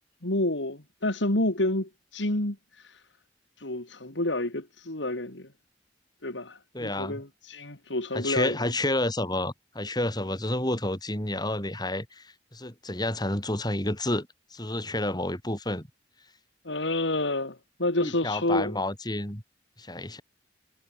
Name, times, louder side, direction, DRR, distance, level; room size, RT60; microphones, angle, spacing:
voice 1, 0.2-3.0 3.6-5.5 6.2-8.7 16.7-18.8, left 1 dB, 85° left, 3.5 m, -29 dB
voice 2, 6.7-7.2 8.1-15.9 18.0-19.4 19.8-20.2, left 1 dB, 25° left, 6.6 m, -30 dB
head